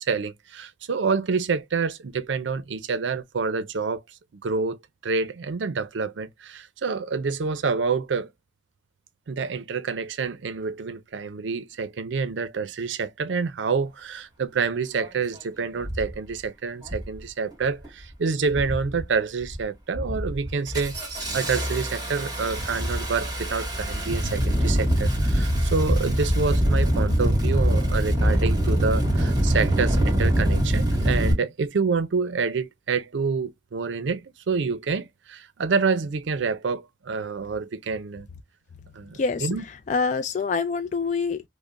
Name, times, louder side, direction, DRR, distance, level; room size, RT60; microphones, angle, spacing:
voice 1, 0.0-4.0 4.3-4.8 5.0-8.3 9.3-21.0 21.3-38.3 38.9-39.6, right 5 dB, 80° right, 0.5 m, -27 dB
Engine starting, 15.0-15.1 15.8-16.1 16.8-17.2 17.5-18.0 18.5-19.0 19.4-19.6 19.9-31.3, equal, 25° right, 1.6 m, -24 dB
voice 2, 39.1-41.4, left 5 dB, 40° left, 0.3 m, -26 dB
5.1 x 2.1 x 2.4 m
head